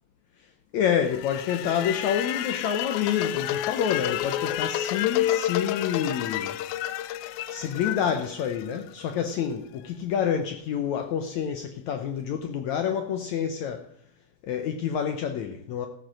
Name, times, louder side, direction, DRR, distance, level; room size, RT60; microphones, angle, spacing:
voice 1, 0.7-6.6 7.5-13.9 14.4-15.9, left 8 dB, 75° left, 6 dB, 1.7 m, -28 dB
sound 1, 1.0-9.1, left 13 dB, 90° left, 2.5 m, -30 dB
14.5 x 8.7 x 6.2 m, 0.73 s
omnidirectional pair, 4.1 m